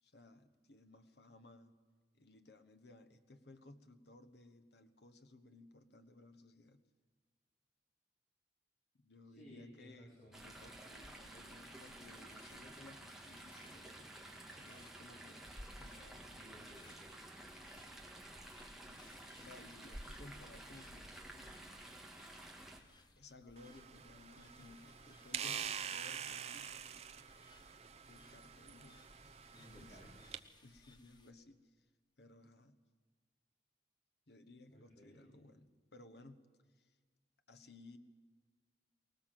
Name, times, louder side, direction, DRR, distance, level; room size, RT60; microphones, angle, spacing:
voice 1, 0.0-1.7 2.1-6.8 8.9-10.1 10.4-15.5 15.8-16.3 18.9-19.0 19.4-21.6 22.2-22.3 23.2-26.7 27.2-27.3 28.1-30.2 30.6-31.9 32.2-32.8 34.3-36.4 36.7-37.0 37.5-38.0, left 2 dB, 70° left, 8 dB, 1.2 m, -59 dB
voice 2, 9.2-10.6 16.3-17.5 29.5-30.1 34.7-35.4, equal, 40° left, -5 dB, 4.6 m, -59 dB
Chatter / Stream, 10.3-22.8, right 1 dB, ahead, 2.0 m, -52 dB
sound 1, 11.9-31.3, left 2 dB, 25° left, 1.3 m, -66 dB
sound 2, 23.6-30.4, right 8 dB, 35° right, 0.7 m, -46 dB
24.0 x 19.5 x 7.6 m, 1.5 s
head